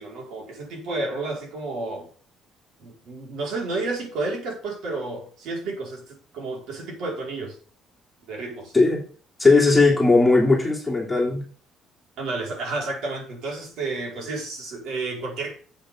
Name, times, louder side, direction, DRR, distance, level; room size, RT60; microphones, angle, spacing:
voice 1, 0.0-2.1 2.8-7.6 8.3-8.7 12.2-15.6, right 3 dB, 65° right, 5.3 m, -31 dB
voice 2, 9.4-11.4, left 3 dB, 5° left, 3.1 m, -18 dB
11.5 x 8.1 x 3.9 m
cardioid pair, 160°, 0 cm